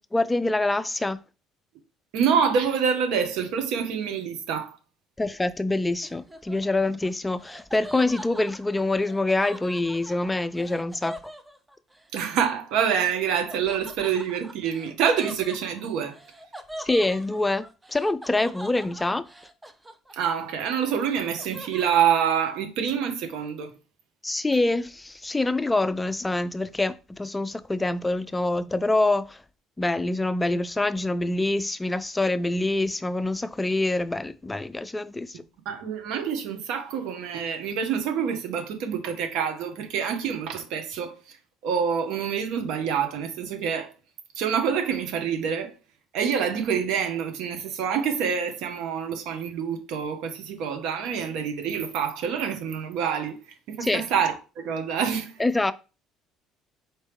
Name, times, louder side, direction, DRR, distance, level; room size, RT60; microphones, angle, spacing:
voice 1, 0.1-1.2 5.2-11.1 16.8-19.3 24.2-29.4 29.8-35.4 53.8-54.0 55.4-55.7, left 2 dB, 15° left, 0.4 m, -25 dB
voice 2, 2.1-4.8 12.1-16.2 20.1-23.7 35.6-41.4 41.6-43.9 44.3-45.7 46.1-53.4 53.7-55.4, right 7 dB, 70° right, 0.9 m, -26 dB
Laughter, 6.0-12.1 13.5-20.5 20.8-22.2, equal, 15° right, 0.7 m, -43 dB
4.4 x 3.1 x 3.4 m
hypercardioid pair, 70°, 0 cm